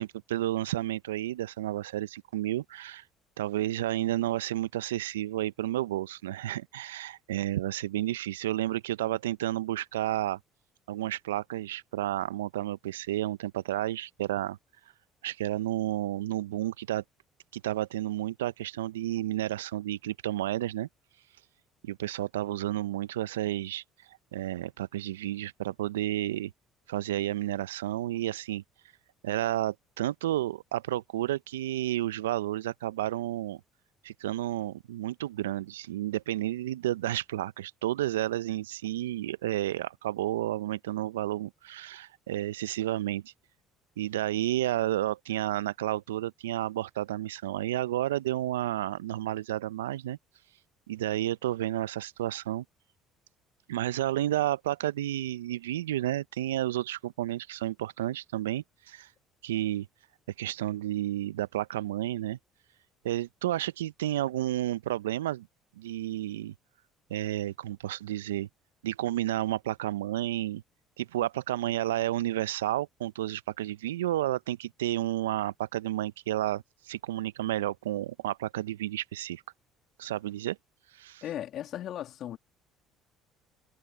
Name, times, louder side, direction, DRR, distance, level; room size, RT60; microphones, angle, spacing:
voice 1, 0.0-3.0 3.4-10.4 10.9-14.6 15.2-17.0 17.5-20.9 21.8-23.8 24.3-26.5 26.9-28.6 29.2-33.6 34.0-43.3 44.0-50.2 50.9-52.6 53.7-59.1 59.4-59.9 60.4-62.4 63.0-65.5 65.8-66.5 67.1-68.5 68.8-70.6 71.0-79.4 80.0-80.6 81.0-81.2, right 14 dB, 85° right, 0.6 m, -31 dB
voice 2, 81.2-82.4, left 11 dB, 55° left, 2.6 m, -36 dB
hypercardioid pair, 60°, 0 cm